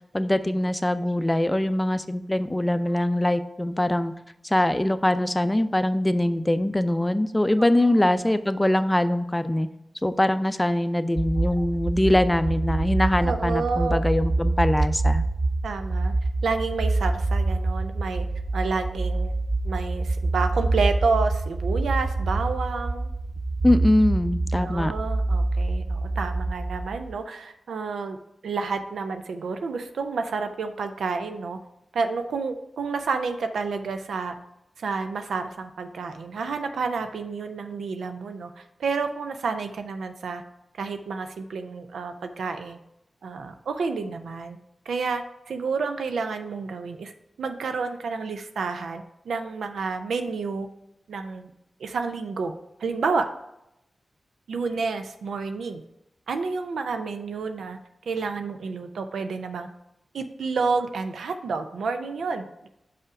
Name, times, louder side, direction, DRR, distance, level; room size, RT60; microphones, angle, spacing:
voice 1, 0.1-4.1 4.4-9.7 10.0-15.2 23.6-24.9, left 1 dB, 15° left, 11 dB, 0.5 m, -23 dB
sound 1, 11.2-27.1, right 2 dB, 35° right, 0.5 m, -26 dB
voice 2, 13.2-14.0 15.6-16.1 16.4-18.3 18.5-19.3 19.6-23.1 24.6-28.2 28.4-31.6 31.9-34.4 34.8-40.4 40.8-42.8 43.2-44.6 44.9-47.1 47.4-50.7 51.1-51.5 51.8-53.3 54.5-55.8 56.3-57.8 58.1-59.7 60.1-62.7, right 4 dB, 90° right, 7 dB, 0.4 m, -29 dB
5.5 x 5.0 x 4.8 m, 0.84 s
cardioid pair, 45°, 0 cm